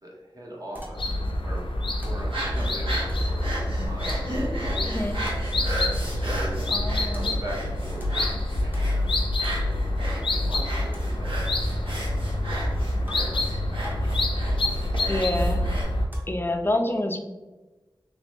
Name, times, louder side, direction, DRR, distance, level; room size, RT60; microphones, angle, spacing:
voice 1, 0.0-4.2 4.6-5.5 6.1-9.8 10.3-11.5 11.8-12.1 13.0-14.6 14.9-15.2 15.6-15.7, right 1 dB, 45° right, -3 dB, 1.1 m, -42 dB
sound 1, 0.8-1.2 1.6-1.7 2.0-2.4 3.1-3.5 4.1-4.4 5.2-5.6 7.1-7.4 8.0-8.4 8.7-9.1 9.4-9.7 10.9-11.1 13.1-13.4 13.8-14.1 14.6-14.8 16.1-16.4, equal, 20° right, 0.9 m, -41 dB
sound 2, 1.0-16.1, left 1 dB, 75° left, 0.5 m, -27 dB
sound 3, 2.2-15.8, right 1 dB, 90° right, 1.1 m, -35 dB
voice 2, 6.7-7.4 15.1-15.6 16.3-17.2, left 1 dB, 25° left, 5 dB, 0.4 m, -27 dB
3.1 x 3.0 x 3.2 m, 1.2 s
wide cardioid pair, 65°, 9 cm